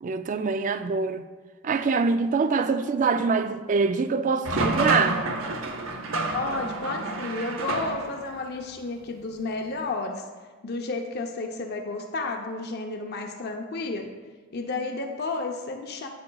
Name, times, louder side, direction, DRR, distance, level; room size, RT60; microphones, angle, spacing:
voice 1, 0.0-1.3 1.6-5.2, right 4 dB, 35° right, 0.3 m, -24 dB
sound 1, 4.4-8.4, right 2 dB, 65° right, 0.7 m, -29 dB
voice 2, 6.3-10.2 10.6-14.1 14.5-16.1, left 3 dB, 50° left, 0.6 m, -32 dB
8.6 x 8.5 x 2.3 m
head